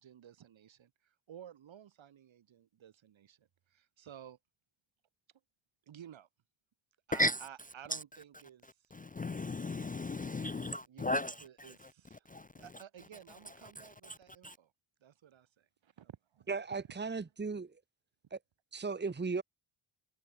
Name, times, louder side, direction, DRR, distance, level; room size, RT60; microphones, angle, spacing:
voice 1, 0.0-4.4 5.9-6.3 7.1-8.7 10.5-12.3 12.6-14.7 15.0-16.8, right 9 dB, 70° right, 7.6 m, -54 dB
voice 2, 8.9-11.7 12.3-12.5 14.1-14.2 14.4-14.5, left 1 dB, 20° left, 0.5 m, -35 dB
voice 3, 16.5-17.8 18.3-18.4 18.7-19.4, right 4 dB, 20° right, 2.4 m, -36 dB
wide cardioid pair, 150°, 48 cm